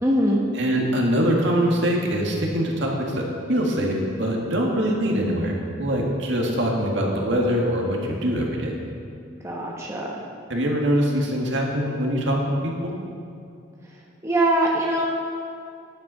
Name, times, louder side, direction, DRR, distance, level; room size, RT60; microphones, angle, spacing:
voice 1, 0.0-0.5 9.4-10.2 14.2-15.1, right 1 dB, 15° right, -3 dB, 1.1 m, -22 dB
voice 2, 0.6-3.2 3.5-8.8 10.5-12.9, equal, 65° right, -1 dB, 1.9 m, -23 dB
10.5 x 9.6 x 5.6 m, 2.5 s
head